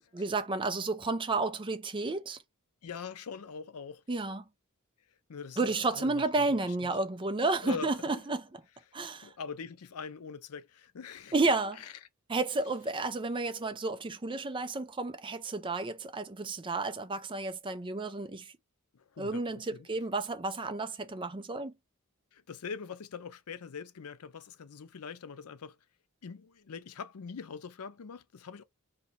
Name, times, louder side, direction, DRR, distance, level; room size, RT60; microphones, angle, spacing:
voice 1, 0.1-2.4 4.1-4.4 5.6-8.6 8.9-9.3 11.3-11.8 12.3-18.5 19.2-21.7, right 3 dB, 20° right, 0.5 m, -31 dB
voice 2, 2.8-4.0 5.3-6.9 7.6-8.2 8.9-9.0 9.2-11.3 11.8-11.9 18.9-19.9 22.3-25.8 26.2-28.6, left 6 dB, 80° left, 0.5 m, -43 dB
2.9 x 2.8 x 4.1 m
head